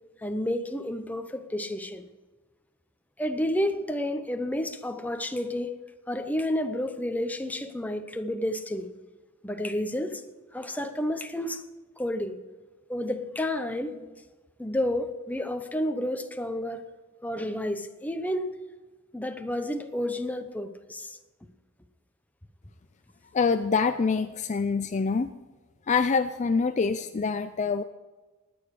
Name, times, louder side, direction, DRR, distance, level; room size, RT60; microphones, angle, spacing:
voice 1, 0.2-2.1 3.2-5.8 6.1-8.9 9.4-10.2 10.5-11.6 12.0-12.4 12.9-14.1 14.6-16.8 17.2-18.5 19.1-21.2, left 1 dB, 10° left, 0.8 m, -30 dB
voice 2, 23.3-25.3 25.9-27.8, left 5 dB, 35° left, 0.4 m, -25 dB
19.5 x 8.9 x 4.8 m
head